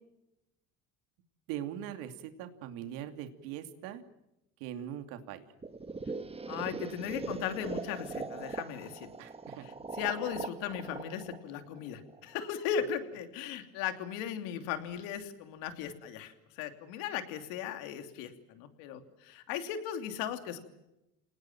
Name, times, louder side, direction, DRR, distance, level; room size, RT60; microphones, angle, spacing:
voice 1, 1.5-4.0 4.6-5.4 9.2-9.6, right 11 dB, 85° right, 7 dB, 2.8 m, -41 dB
sound 1, 5.6-12.5, right 4 dB, 15° right, 1.5 m, -41 dB
voice 2, 6.5-9.1 9.6-20.6, left 8 dB, 85° left, 7 dB, 3.0 m, -37 dB
29.5 x 19.5 x 7.6 m, 0.88 s
supercardioid pair, 100°, 34 cm